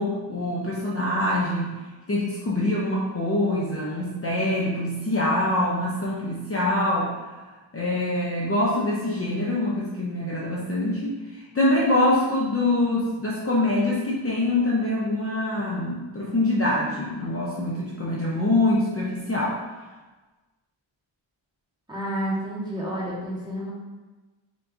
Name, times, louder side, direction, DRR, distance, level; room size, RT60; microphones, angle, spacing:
voice 1, 0.0-1.7 2.1-7.1 7.7-19.6, left 1 dB, 30° left, -6 dB, 0.6 m, -24 dB
voice 2, 21.9-23.7, equal, 10° right, -7 dB, 1.3 m, -30 dB
3.8 x 3.7 x 2.5 m, 1.2 s
wide cardioid pair, 80°, 48 cm